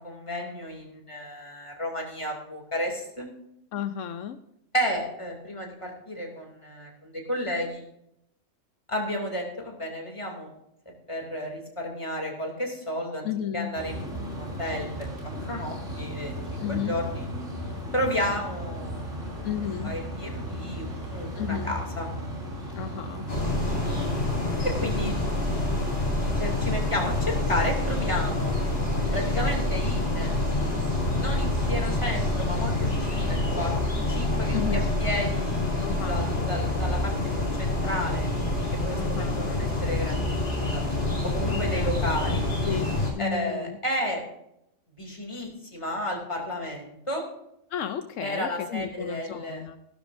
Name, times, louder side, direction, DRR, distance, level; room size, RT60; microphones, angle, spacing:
voice 1, 0.0-3.3 4.7-7.8 8.9-10.5 11.1-13.3 13.5-14.9 15.4-17.3 17.9-19.5 19.8-22.1 24.6-25.1 25.6-28.5 29.1-30.3 31.0-33.7 34.1-34.6 35.0-37.1 37.6-38.3 38.8-40.8 41.2-42.4 43.2-44.2 45.0-47.2 48.2-49.6, left 1 dB, 25° left, 0 dB, 2.8 m, -32 dB
voice 2, 3.7-4.4 13.2-13.7 16.6-17.0 19.4-20.0 21.4-21.8 22.7-23.2 23.9-24.3 34.5-34.8 35.8-36.2 39.0-39.4 41.5-42.0 42.6-43.8 47.7-49.8, left 9 dB, 80° left, 9 dB, 1.1 m, -33 dB
sound 1, 13.7-33.7, right 1 dB, 70° right, 3.6 m, -36 dB
sound 2, 23.3-43.1, left 2 dB, 40° left, 3.3 m, -27 dB
15.5 x 12.0 x 2.6 m, 0.79 s
omnidirectional pair, 1.3 m